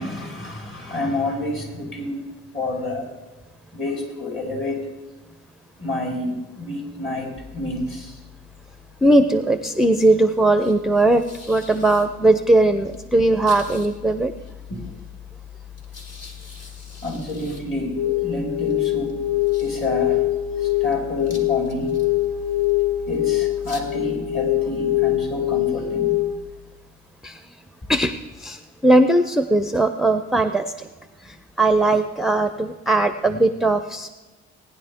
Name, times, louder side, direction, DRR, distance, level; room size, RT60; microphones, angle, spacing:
voice 1, 0.0-2.2 2.5-3.1 3.7-4.8 5.8-8.2 14.7-14.9 17.0-19.2 19.6-20.2 20.6-22.0 23.1-26.2, left 2 dB, 40° left, 0 dB, 4.7 m, -28 dB
sound 1, 7.4-27.3, left 8 dB, 60° left, 2.2 m, -43 dB
voice 2, 9.0-14.3 27.2-27.4 27.9-30.9 31.2-34.1, right 2 dB, ahead, 9 dB, 0.5 m, -19 dB
sound 2, 18.0-26.4, left 14 dB, 85° left, 1.8 m, -23 dB
19.0 x 10.0 x 3.6 m, 1.2 s
cardioid pair, 90°, 30 cm